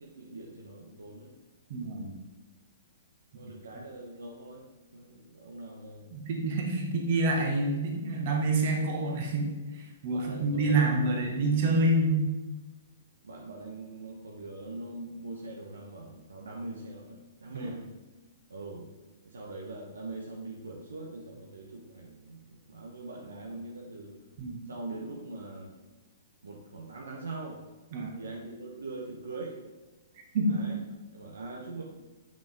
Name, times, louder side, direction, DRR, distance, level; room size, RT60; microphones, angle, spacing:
voice 1, 0.0-1.4 3.3-4.7 4.9-6.1 10.1-11.3 13.2-17.9 18.5-18.9 19.2-24.2 24.7-25.7 26.4-27.7 28.2-29.6 30.5-30.8 31.1-31.8, right 2 dB, 70° right, -1 dB, 1.3 m, -42 dB
voice 2, 1.7-2.1 6.1-9.5 9.7-12.3 17.5-17.6 24.4-24.6 27.9-28.1 30.3-30.6, right 2 dB, 45° right, 0 dB, 1.8 m, -27 dB
8.9 x 6.0 x 3.7 m, 1.2 s
figure-of-eight pair, 115°, 0 cm